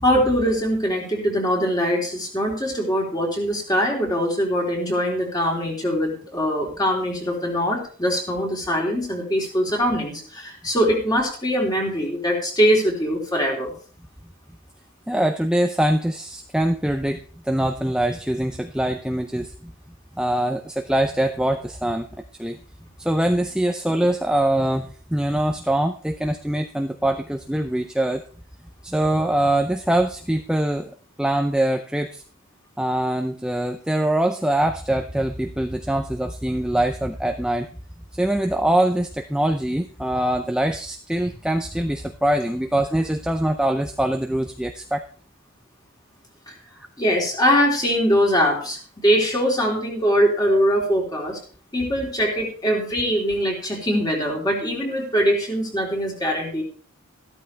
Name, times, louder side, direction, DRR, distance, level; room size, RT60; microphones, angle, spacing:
voice 1, 0.0-13.7 46.5-46.6 47.0-51.4 51.7-56.6, equal, 20° left, -1 dB, 3.5 m, -22 dB
voice 2, 15.1-19.7 20.2-22.1 22.4-22.6 23.0-28.2 28.8-30.9 31.2-32.2 32.8-37.7 38.2-45.0, right 1 dB, 5° right, 6 dB, 0.5 m, -23 dB
14.0 x 12.5 x 3.3 m, 0.42 s
head